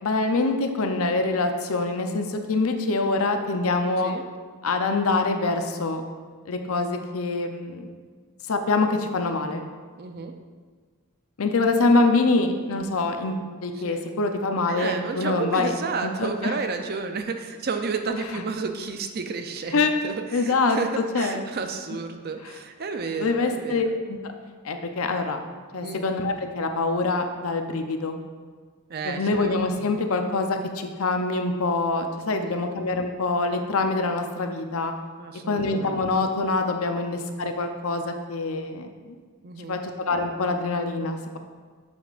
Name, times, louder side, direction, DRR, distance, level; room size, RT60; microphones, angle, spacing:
voice 1, 0.0-4.1 4.6-6.0 6.5-7.8 8.5-9.7 11.4-13.3 13.6-15.7 16.0-16.5 19.7-19.9 20.3-20.8 21.1-21.4 23.2-24.3 24.6-25.4 25.7-28.2 29.0-34.9 35.5-39.2 39.6-41.4, left 3 dB, 70° left, 6 dB, 0.6 m, -25 dB
voice 2, 9.9-10.3 13.8-14.1 14.7-24.0 25.8-26.1 28.9-29.9 32.3-32.6 35.2-36.0 39.4-39.8, right 4 dB, 45° right, 6 dB, 0.5 m, -32 dB
8.0 x 6.9 x 2.5 m, 1.5 s
head